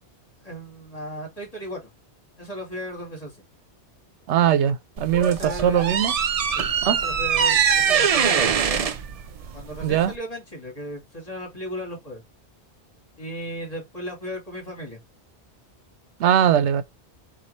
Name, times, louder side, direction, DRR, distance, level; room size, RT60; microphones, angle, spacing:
voice 1, 0.4-1.9 2.4-3.3 4.6-4.7 5.2-6.0 6.6-8.9 9.5-12.2 13.2-15.0, equal, 35° left, 2.2 m, -35 dB
voice 2, 4.3-6.1 6.8-7.0 9.8-10.1 16.2-16.8, right 9 dB, 85° right, 0.9 m, -20 dB
sound 1, 5.0-10.2, right 7 dB, 60° right, 0.4 m, -23 dB
4.3 x 2.6 x 4.0 m
omnidirectional pair, 1.2 m